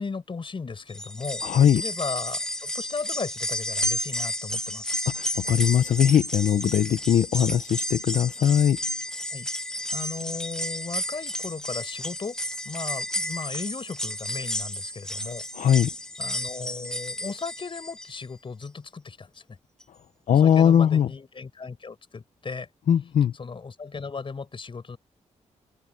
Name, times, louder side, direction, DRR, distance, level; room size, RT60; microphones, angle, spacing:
voice 1, 0.0-5.1 9.3-9.5 9.9-12.4 12.6-15.4 16.2-19.4 20.3-22.7 23.3-25.0, left 4 dB, 40° left, 6.2 m, -36 dB
sound 1, 0.9-18.2 18.6-18.7 19.8-19.9, left 1 dB, 5° left, 1.2 m, -32 dB
voice 2, 1.4-1.8 5.1-8.8 15.6-15.9 20.3-21.1 22.9-23.3, left 9 dB, 80° left, 0.8 m, -20 dB
open air
cardioid pair, 95°, 13 cm